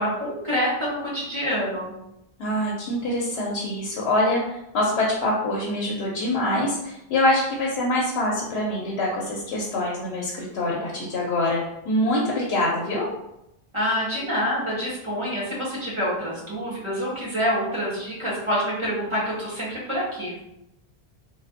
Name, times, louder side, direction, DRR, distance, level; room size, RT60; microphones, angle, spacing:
voice 1, 0.0-1.9 13.7-20.4, equal, 30° right, -7 dB, 1.1 m, -27 dB
voice 2, 2.4-13.1, left 1 dB, 80° left, -4 dB, 0.8 m, -25 dB
3.2 x 2.2 x 2.5 m, 0.86 s
omnidirectional pair, 1.1 m